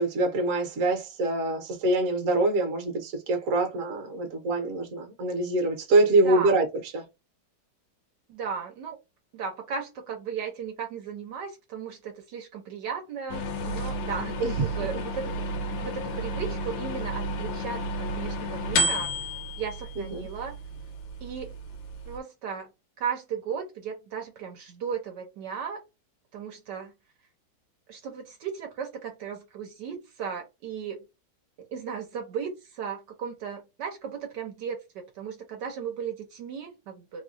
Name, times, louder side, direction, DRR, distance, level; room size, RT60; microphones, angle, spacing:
voice 1, 0.0-6.7 6.9-7.0 14.4-14.6 20.0-20.3, right 2 dB, 50° right, 1.2 m, -25 dB
voice 2, 6.2-6.5 8.3-9.0 9.3-14.3 14.6-15.3 15.8-19.1 19.6-20.6 21.2-21.5 22.1-22.7 23.0-25.8 26.3-26.9 27.9-31.1 31.6-37.2, right 7 dB, 70° right, 1.3 m, -36 dB
sound 1, 13.3-22.2, equal, 75° left, 1.2 m, -32 dB
3.2 x 2.3 x 2.5 m
omnidirectional pair, 2.0 m